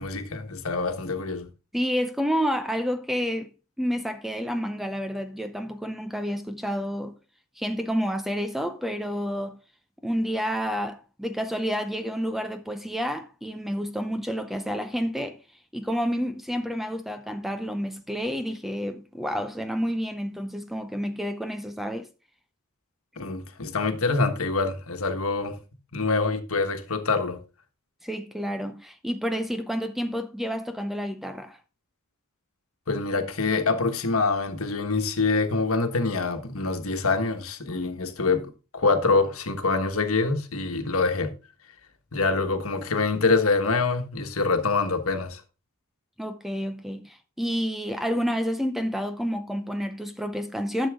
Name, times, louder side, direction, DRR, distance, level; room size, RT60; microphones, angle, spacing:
voice 1, 0.0-1.5 23.2-25.6 25.9-27.4 32.9-41.3 42.1-45.4, left 3 dB, 70° left, 1.4 m, -25 dB
voice 2, 1.7-7.2 7.6-9.6 10.0-15.4 15.7-22.1 28.0-31.6 46.2-50.9, equal, ahead, 0.6 m, -29 dB
11.5 x 7.0 x 3.6 m
head